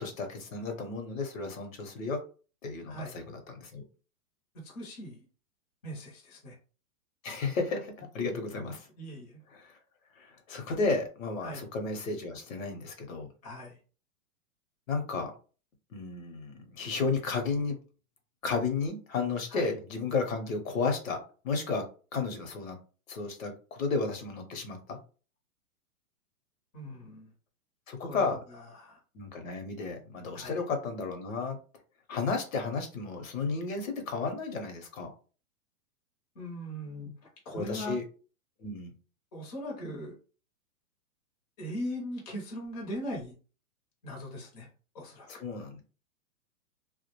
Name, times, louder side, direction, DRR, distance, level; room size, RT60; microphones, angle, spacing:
voice 1, 0.0-2.2 2.6-3.8 7.2-8.9 9.5-9.8 10.2-13.3 14.9-15.3 15.9-17.8 18.4-21.2 21.4-21.8 22.1-22.8 23.1-25.0 27.9-28.4 29.1-31.6 32.1-35.1 37.5-38.0 38.6-38.9 45.3-45.8, left 4 dB, 60° left, 4 dB, 0.8 m, -33 dB
voice 2, 2.9-3.2 4.5-5.2 5.8-6.6 9.0-9.4 11.4-11.7 13.4-13.8 19.5-19.7 26.7-27.3 28.0-29.0 30.3-30.6 36.3-38.0 39.3-40.2 41.6-43.4 44.0-44.7 44.9-45.3, equal, 30° left, -2 dB, 0.7 m, -40 dB
2.2 x 2.1 x 2.9 m, 0.37 s
hypercardioid pair, 165°, 44 cm